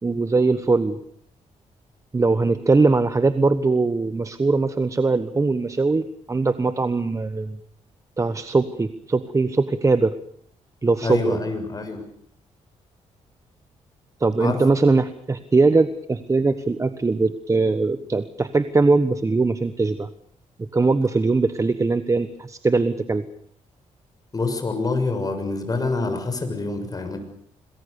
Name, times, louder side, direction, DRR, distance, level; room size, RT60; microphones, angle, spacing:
voice 1, 0.0-1.0 2.1-7.6 8.2-10.1 10.8-11.4 14.2-20.1 20.7-23.2, right 3 dB, 25° right, 12 dB, 1.2 m, -21 dB
voice 2, 11.0-12.0 14.4-14.6 24.3-27.2, left 3 dB, 30° left, 6 dB, 6.8 m, -26 dB
26.5 x 21.5 x 7.0 m, 0.62 s
cardioid pair, 95°, 13 cm